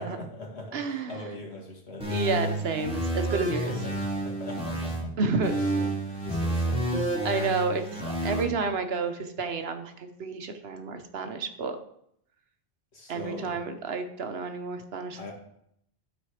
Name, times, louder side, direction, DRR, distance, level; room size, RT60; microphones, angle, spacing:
voice 1, 0.0-2.1 3.6-5.1 5.7-7.0 12.9-13.6 15.2-15.3, left 1 dB, 70° left, -1 dB, 2.2 m, -41 dB
voice 2, 0.7-1.3 2.1-3.7 5.2-5.6 7.2-11.8 13.1-15.3, right 4 dB, 65° right, 8 dB, 1.1 m, -30 dB
sound 1, 2.0-5.0 5.4-8.4, right 1 dB, 5° right, 2.7 m, -29 dB
11.5 x 4.3 x 4.9 m, 0.71 s
omnidirectional pair, 1.1 m